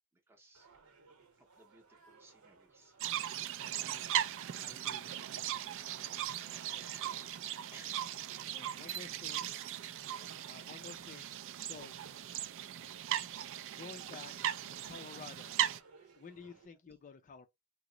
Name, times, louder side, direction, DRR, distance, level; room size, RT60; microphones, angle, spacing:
voice 1, 0.1-0.7 1.4-3.0 5.7-7.1 7.7-8.3 16.0-16.1 16.5-16.6, right 2 dB, 10° right, 0.6 m, -62 dB
sound 1, 0.5-16.7, right 4 dB, 80° right, 0.9 m, -62 dB
sound 2, 3.0-15.8, right 11 dB, 60° right, 0.3 m, -38 dB
voice 2, 3.6-4.3 4.6-5.5 6.4-6.9 8.5-9.5 10.1-11.3 11.6-11.9 13.8-14.3 14.7-15.6 16.2-17.5, left 5 dB, 35° left, 0.4 m, -52 dB
2.9 x 2.0 x 3.7 m
head